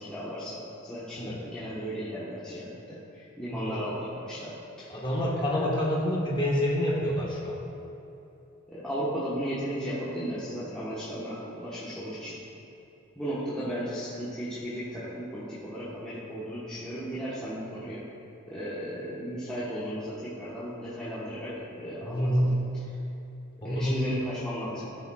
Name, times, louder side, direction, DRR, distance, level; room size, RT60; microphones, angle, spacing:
voice 1, 0.0-5.0 5.4-5.6 8.7-12.4 13.2-18.1 18.5-22.6 23.6-24.9, equal, 5° left, -11 dB, 1.2 m, -35 dB
voice 2, 4.9-7.6 22.0-22.6 23.6-24.1, equal, 20° left, -4 dB, 1.3 m, -27 dB
15.0 x 6.8 x 2.4 m, 3.0 s
head